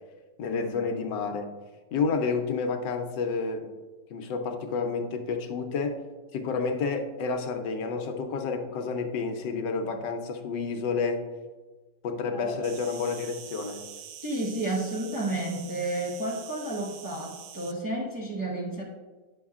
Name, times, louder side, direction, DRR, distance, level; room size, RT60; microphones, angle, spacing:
voice 1, 0.4-1.5 1.9-3.7 4.1-6.0 6.3-11.2 12.0-13.8, left 4 dB, 90° left, 5 dB, 1.4 m, -30 dB
Insect, 12.6-17.7, right 9 dB, 70° right, 0.9 m, -45 dB
voice 2, 14.2-18.8, right 2 dB, 15° right, -4 dB, 0.8 m, -31 dB
9.4 x 6.3 x 2.4 m, 1.3 s
omnidirectional pair, 1.9 m